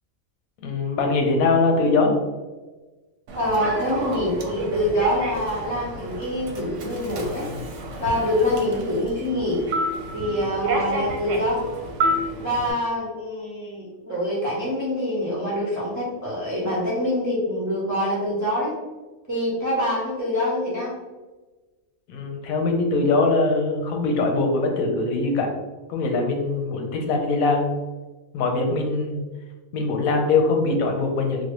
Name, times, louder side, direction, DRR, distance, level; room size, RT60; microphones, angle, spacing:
voice 1, 0.6-2.1 22.1-25.5 25.9-27.6 28.3-29.2 29.7-31.5, left 3 dB, 85° left, 3 dB, 1.0 m, -22 dB
voice 2, 3.3-7.5 8.0-9.6 10.1-11.6 12.4-18.7 19.3-21.0, left 1 dB, 20° right, -7 dB, 0.4 m, -25 dB
Human voice / Subway metro underground, 3.3-12.7, right 1 dB, 70° right, 0.8 m, -30 dB
3.2 x 2.2 x 2.9 m, 1.2 s
omnidirectional pair, 1.4 m